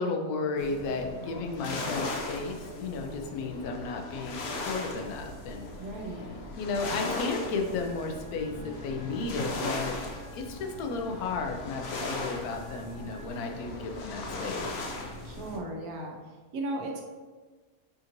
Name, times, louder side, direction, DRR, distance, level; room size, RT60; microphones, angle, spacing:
voice 1, 0.0-5.7 6.6-10.0 10.3-14.7, left 3 dB, 90° left, 3 dB, 1.1 m, -33 dB
sound 1, 0.6-15.6, left 2 dB, 60° left, 0.7 m, -38 dB
Bus, 5.1-10.4, right 1 dB, 65° right, 1.0 m, -50 dB
voice 2, 5.8-6.2 15.2-16.2 16.5-17.0, right 1 dB, 85° right, 1 dB, 1.2 m, -36 dB
sound 2, 7.8-13.5, right 1 dB, 15° right, 0.8 m, -55 dB
5.3 x 2.5 x 2.9 m, 1.3 s
omnidirectional pair, 1.5 m